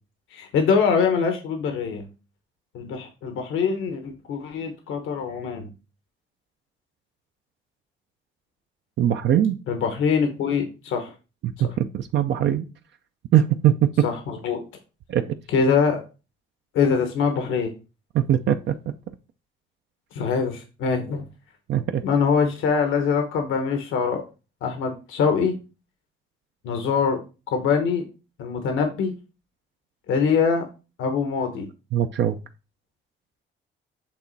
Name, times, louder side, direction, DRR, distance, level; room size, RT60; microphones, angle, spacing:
voice 1, 0.3-2.1 2.7-5.7 9.7-11.1 14.0-14.6 15.5-16.0 16.7-17.7 20.1-21.2 22.0-24.2 24.6-25.5 26.6-27.2 27.5-28.0 28.4-29.1 30.1-30.7 31.0-31.7, left 6 dB, 85° left, 5 dB, 1.1 m, -23 dB
voice 2, 9.0-9.6 11.4-12.7 13.3-14.1 15.1-15.4 18.1-18.8 21.7-22.0 31.9-32.4, right 11 dB, 65° right, 7 dB, 0.5 m, -21 dB
8.1 x 3.1 x 4.0 m, 0.31 s
cardioid pair, 90°, 20 cm